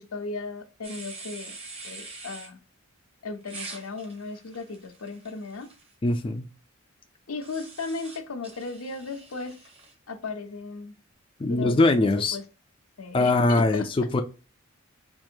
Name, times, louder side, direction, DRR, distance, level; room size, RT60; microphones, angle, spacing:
voice 1, 0.0-1.6 1.8-2.6 3.2-5.7 7.3-9.6 10.1-10.9 11.5-12.4 13.0-13.9, left 3 dB, 85° left, 0.8 m, -36 dB
sound 1, 0.8-2.5 3.4-5.9 7.4-9.9, right 3 dB, 30° right, 0.9 m, -44 dB
voice 2, 6.0-6.5 11.4-12.4 13.1-14.2, left 2 dB, 25° left, 0.4 m, -22 dB
4.6 x 2.6 x 2.8 m
head